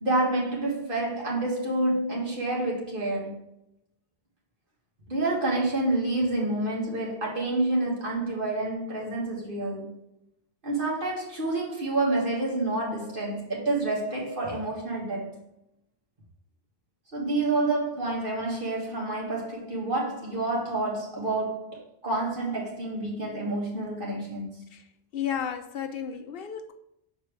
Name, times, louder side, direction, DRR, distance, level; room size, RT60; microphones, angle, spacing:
voice 1, 0.0-3.4 5.1-9.9 10.6-15.4 17.1-24.5, right 2 dB, 55° right, 2.0 m, -28 dB
voice 2, 24.7-26.7, left 8 dB, 65° left, 0.7 m, -33 dB
6.7 x 4.4 x 3.2 m
omnidirectional pair, 1.1 m